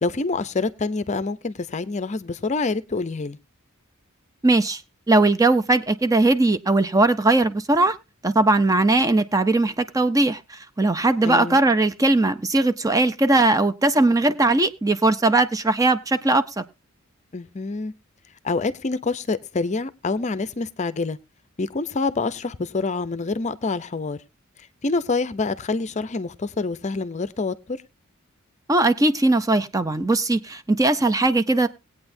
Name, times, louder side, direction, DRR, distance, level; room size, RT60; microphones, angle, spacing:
voice 1, 0.0-3.4 11.2-11.6 17.3-17.9 18.4-21.2 21.6-24.2 24.8-27.8, left 3 dB, 35° left, 0.6 m, -26 dB
voice 2, 4.4-4.8 5.1-8.0 8.2-16.6 28.7-31.7, right 2 dB, 15° right, 0.5 m, -19 dB
19.0 x 8.7 x 2.7 m
head